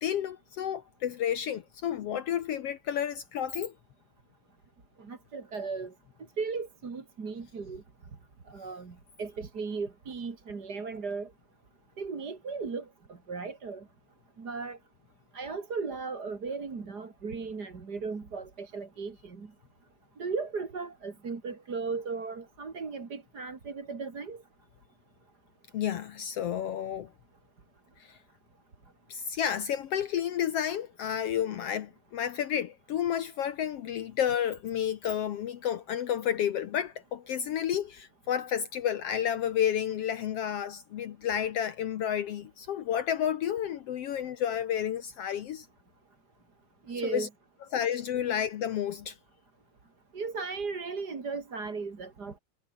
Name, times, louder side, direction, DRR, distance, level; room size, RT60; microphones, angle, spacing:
voice 1, 0.0-3.7 25.7-27.1 28.0-28.2 29.1-45.7 47.0-47.3 47.7-49.2, left 9 dB, 65° left, 1.8 m, -31 dB
voice 2, 5.0-5.9 6.4-7.8 8.5-11.3 12.0-12.8 13.3-13.8 14.4-14.8 15.3-19.5 20.2-24.4 46.9-47.3 50.1-52.4, right 4 dB, 35° right, 2.9 m, -36 dB
omnidirectional pair, 3.4 m